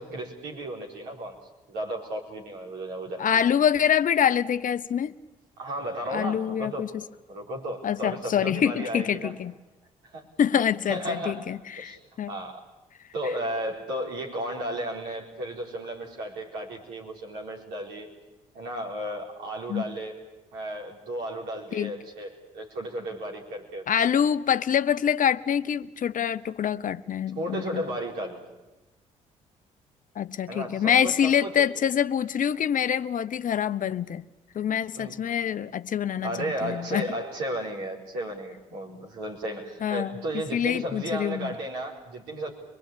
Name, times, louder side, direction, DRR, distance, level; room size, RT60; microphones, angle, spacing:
voice 1, 0.0-1.4 1.7-3.3 5.6-6.9 7.3-9.3 10.0-10.3 10.9-11.5 11.7-12.0 12.3-12.6 13.1-18.1 18.5-20.2 20.5-23.9 27.3-28.4 30.5-31.6 34.9-35.4 36.2-42.5, right 1 dB, 80° right, 4.5 m, -34 dB
voice 2, 3.2-5.1 6.1-6.9 7.8-9.5 10.4-12.3 19.7-19.8 21.7-21.9 23.9-27.8 30.2-34.2 34.5-36.3 36.6-37.1 39.8-40.2 40.5-41.5, left 8 dB, 50° left, 0.9 m, -25 dB
23.5 x 23.0 x 8.7 m
hypercardioid pair, 50°, 17 cm